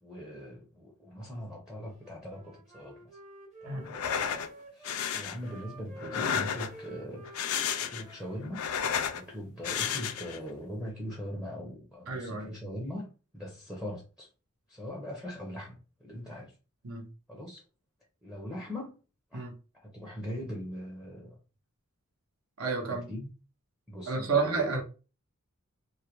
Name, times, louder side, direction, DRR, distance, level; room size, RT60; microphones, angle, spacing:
voice 1, 0.0-3.1 3.6-3.9 4.7-8.7 9.1-14.3 14.7-16.6 17.3-17.6 18.2-19.0 19.3-19.5 19.7-21.4 22.8-23.3 23.9-24.8, equal, 5° right, 0.5 m, -41 dB
Wind instrument woodwind instrument, 2.0-5.0 5.4-8.8, right 2 dB, 30° right, 0.8 m, -50 dB
sound 1, 3.8-4.5 4.8-5.4 6.0-6.9 7.2-8.1 8.4-9.2 9.6-10.4, left 8 dB, 75° left, 0.4 m, -32 dB
voice 2, 12.1-12.5 16.8-17.1 19.3-19.5 22.6-23.1 24.1-24.8, right 4 dB, 75° right, 0.7 m, -30 dB
2.3 x 2.1 x 2.9 m
head